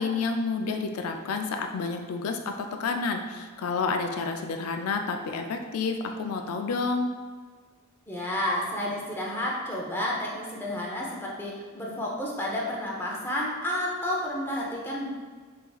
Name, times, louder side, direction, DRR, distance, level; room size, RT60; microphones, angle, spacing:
voice 1, 0.0-7.1, left 4 dB, 80° left, 4 dB, 0.4 m, -29 dB
voice 2, 8.1-15.1, left 1 dB, 10° left, -3 dB, 0.6 m, -31 dB
4.7 x 3.5 x 2.3 m, 1.5 s
head